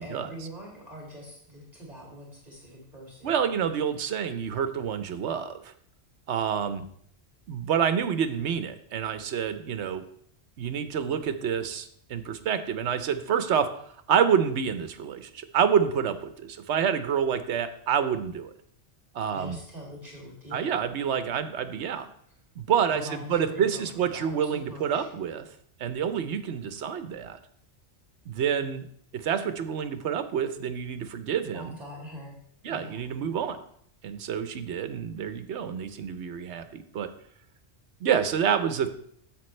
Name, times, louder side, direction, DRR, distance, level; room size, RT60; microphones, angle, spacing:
voice 1, 0.0-3.3 19.3-20.7 22.9-23.8 24.1-25.1 31.5-32.4 32.6-33.0, equal, 35° right, -3 dB, 2.2 m, -43 dB
voice 2, 3.2-5.7 6.3-6.8 7.5-10.0 10.6-13.7 14.1-18.5 19.1-19.6 20.5-22.1 22.6-25.5 25.8-27.4 28.3-28.9 29.1-31.8 32.6-33.6 34.0-37.1 38.0-38.9, right 8 dB, 75° right, 10 dB, 1.0 m, -28 dB
10.5 x 7.8 x 3.2 m, 0.64 s
omnidirectional pair, 1.2 m